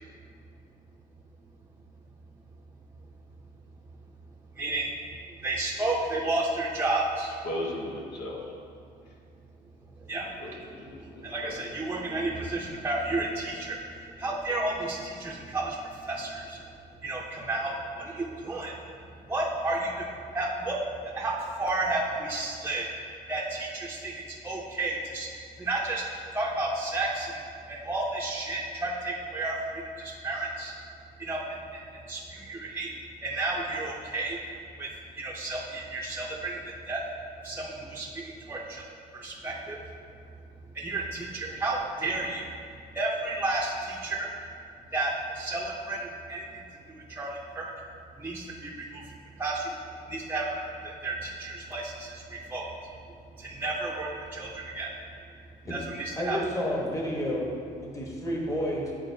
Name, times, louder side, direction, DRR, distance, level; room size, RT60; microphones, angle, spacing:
voice 1, 4.5-4.9 5.3-7.4 10.0-10.5 11.0-16.6 17.0-20.1 20.3-20.8 21.0-22.9 23.3-25.3 25.6-26.0 26.3-27.4 27.7-30.7 31.2-32.9 33.2-34.4 34.7-34.9 35.2-37.0 37.4-38.8 39.1-39.8 40.7-42.5 42.9-44.3 44.9-47.7 48.2-49.0 49.4-49.8 50.1-52.7 53.4-54.9 55.7-56.4, right 2 dB, 10° right, -4 dB, 0.7 m, -32 dB
voice 2, 7.4-8.5 10.4-11.6, left 1 dB, 80° left, -2 dB, 1.2 m, -36 dB
voice 3, 56.2-57.5 57.8-58.9, equal, 20° left, -2 dB, 1.1 m, -30 dB
10.0 x 3.8 x 2.7 m, 2.3 s
cardioid pair, 110°, 17 cm